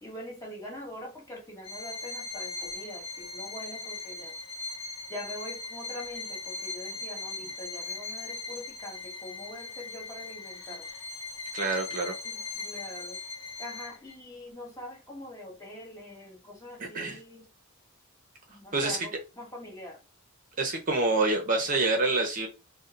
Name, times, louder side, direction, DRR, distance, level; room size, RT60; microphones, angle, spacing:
voice 1, 0.0-4.3 5.1-10.9 12.2-13.2 13.6-17.5 18.5-20.0, left 1 dB, 15° left, 1.2 m, -43 dB
Bowed string instrument, 1.6-14.1, left 3 dB, 70° left, 0.7 m, -39 dB
voice 2, 11.5-12.1 16.9-17.2 18.7-19.0 20.6-22.5, right 2 dB, 40° right, 0.6 m, -26 dB
2.7 x 2.1 x 3.7 m
head